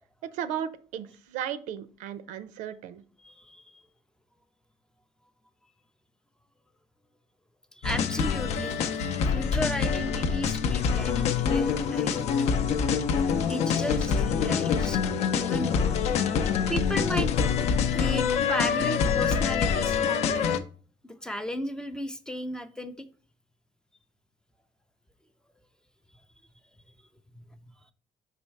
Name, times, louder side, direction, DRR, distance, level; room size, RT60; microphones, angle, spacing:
voice 1, 0.3-3.0, right 9 dB, 90° right, 13 dB, 0.6 m, -35 dB
voice 2, 3.2-3.8 7.7-12.5 13.4-15.0 15.3-16.0 16.7-17.5 17.9-20.5 21.0-23.1 27.3-27.6, equal, 5° left, 9 dB, 0.4 m, -35 dB
sound 1, 7.8-20.6, left 6 dB, 60° left, 0.5 m, -25 dB
5.4 x 4.2 x 4.5 m, 0.40 s
cardioid pair, 150°, 13 cm